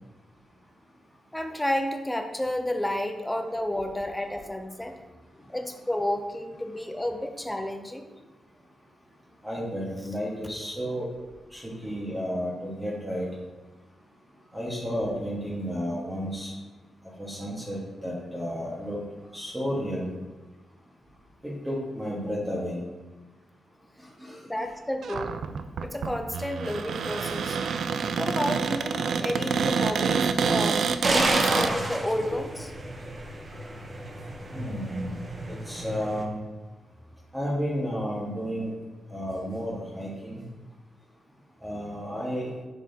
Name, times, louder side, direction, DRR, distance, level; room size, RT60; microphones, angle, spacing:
voice 1, 1.3-5.0 5.5-8.0 24.4-25.4 25.8-27.6 28.2-32.7 33.5-33.8, left 1 dB, 5° left, 5 dB, 0.5 m, -31 dB
voice 2, 9.4-11.1 11.5-13.3 14.5-16.5 17.2-19.0 19.3-20.1 21.4-22.8 24.2-24.4 34.5-35.2 35.5-36.4 37.3-38.7 39.1-40.4 41.6-42.5, equal, 10° right, -6 dB, 1.4 m, -32 dB
Cupboard open or close, 25.0-31.7, right 6 dB, 70° right, 0.3 m, -27 dB
sound 1, 31.0-36.2, right 1 dB, 30° right, 0.8 m, -31 dB
7.2 x 6.3 x 2.8 m, 1.2 s
wide cardioid pair, 130°, 0 cm